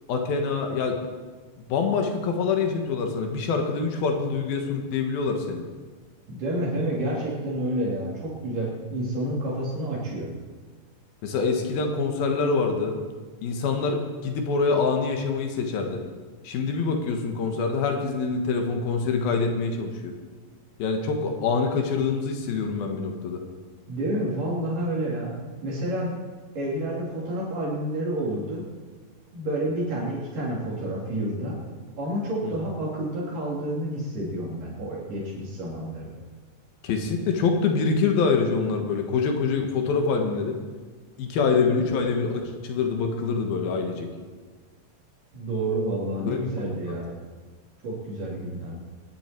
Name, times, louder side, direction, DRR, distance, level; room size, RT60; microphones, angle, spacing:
voice 1, 0.1-1.0 1.7-5.6 11.2-13.0 13.4-16.0 16.4-20.1 20.8-23.4 32.4-32.5 36.8-40.6 41.2-44.1 46.3-46.4, left 4 dB, 90° left, 3 dB, 3.3 m, -25 dB
voice 2, 6.3-10.3 23.9-25.4 25.6-26.2 26.6-28.6 29.3-31.6 32.0-36.1 45.3-47.1 47.8-48.8, right 1 dB, 65° right, -5 dB, 4.8 m, -29 dB
23.0 x 11.0 x 4.6 m, 1.4 s
omnidirectional pair, 4.1 m